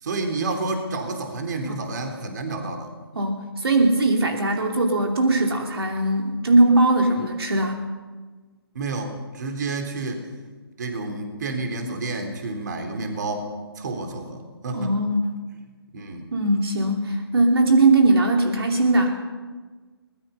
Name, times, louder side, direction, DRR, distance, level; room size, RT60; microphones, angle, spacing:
voice 1, 0.0-2.9 8.7-10.3 10.8-13.5 13.8-14.9 15.9-16.3, right 3 dB, 45° right, 5 dB, 3.7 m, -30 dB
voice 2, 3.1-7.8 14.7-15.3 16.3-19.1, right 2 dB, 70° right, 2 dB, 3.0 m, -20 dB
23.5 x 20.5 x 5.6 m, 1.3 s
figure-of-eight pair, 150°, 13 cm